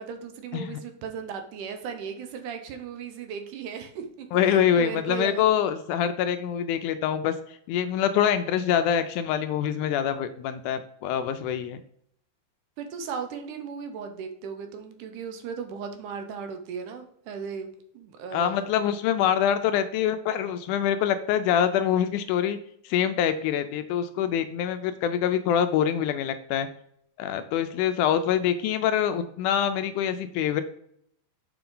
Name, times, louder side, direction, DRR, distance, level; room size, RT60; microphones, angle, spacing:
voice 1, 0.0-5.4 12.8-18.7, right 6 dB, 75° right, 6 dB, 2.3 m, -36 dB
voice 2, 4.3-7.3 7.7-11.8 18.3-22.6 22.8-26.7 27.2-30.6, left 9 dB, 80° left, 9 dB, 1.9 m, -25 dB
6.9 x 5.2 x 3.8 m, 0.69 s
omnidirectional pair, 3.8 m